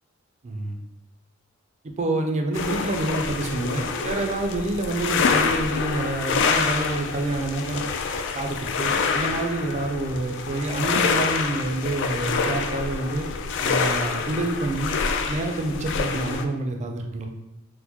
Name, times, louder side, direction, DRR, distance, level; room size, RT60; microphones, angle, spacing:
voice 1, 0.4-0.8 2.0-7.8 8.3-13.3 13.6-14.9 15.3-17.3, right 2 dB, 35° right, 4 dB, 0.4 m, -27 dB
sound 1, 2.5-16.4, left 5 dB, 60° left, 0.3 m, -26 dB
4.3 x 2.1 x 2.8 m, 0.96 s
head